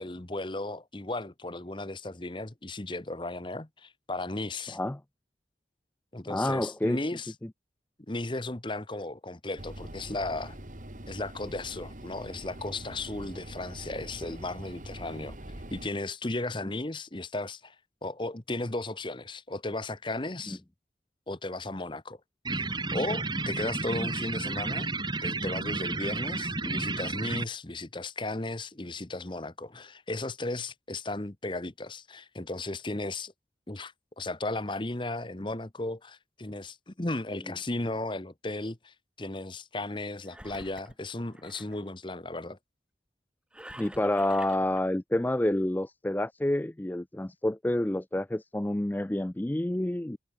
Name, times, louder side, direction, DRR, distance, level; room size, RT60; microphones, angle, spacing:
voice 1, 0.0-4.8 6.1-7.3 8.1-10.6 11.1-15.4 15.7-17.7 18.0-20.6 21.3-22.2 22.5-24.9 25.2-33.3 33.7-42.6, left 2 dB, 25° left, 1.1 m, -35 dB
voice 2, 6.3-7.0 24.0-24.1 43.8-50.2, left 1 dB, 10° left, 0.4 m, -28 dB
sound 1, 9.6-15.9, right 1 dB, 45° right, 2.6 m, -43 dB
sound 2, 22.4-27.4, right 3 dB, 25° right, 2.1 m, -32 dB
Engine, 40.3-41.8 43.5-44.8, right 1 dB, 5° right, 7.1 m, -48 dB
head